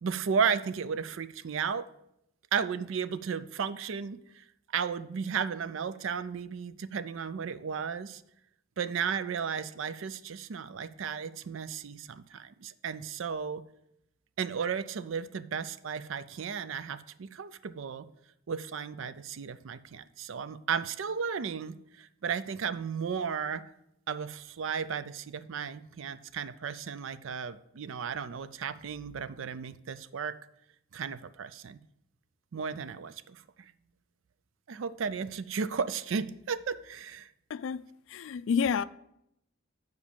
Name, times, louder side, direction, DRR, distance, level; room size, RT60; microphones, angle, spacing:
voice 1, 0.0-1.9 2.5-4.2 4.7-8.2 8.8-13.6 14.4-18.1 18.5-23.6 24.1-30.3 30.9-31.8 32.5-33.4 34.7-37.3, right 6 dB, 70° right, 0.4 m, -34 dB
voice 2, 37.5-37.8 38.1-38.8, left 6 dB, 70° left, 0.3 m, -29 dB
7.3 x 4.7 x 7.0 m
head